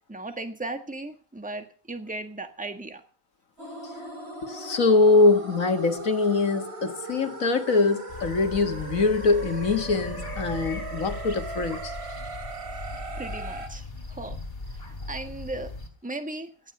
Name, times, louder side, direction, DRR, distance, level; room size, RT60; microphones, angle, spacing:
voice 1, 0.1-3.0 13.1-14.4 15.1-15.7 16.0-16.5, right 2 dB, 5° right, 1.5 m, -36 dB
sound 1, 3.6-13.7, right 3 dB, 45° right, 2.8 m, -38 dB
voice 2, 4.4-11.9, left 3 dB, 65° left, 1.9 m, -23 dB
sound 2, 8.1-15.9, left 3 dB, 30° left, 3.4 m, -38 dB
17.5 x 12.0 x 5.5 m
omnidirectional pair, 1.5 m